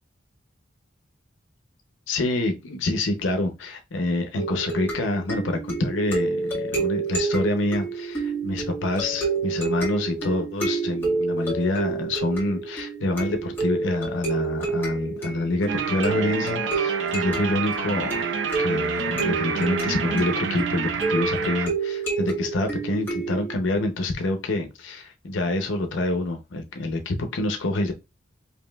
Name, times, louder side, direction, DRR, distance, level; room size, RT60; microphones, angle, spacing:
voice 1, 2.1-18.3 18.6-27.9, left 2 dB, 80° left, 0.6 m, -27 dB
sound 1, 4.4-23.6, right 3 dB, 10° left, 1.5 m, -29 dB
sound 2, 15.7-21.7, right 5 dB, 70° right, 0.5 m, -28 dB
5.1 x 2.7 x 2.2 m
head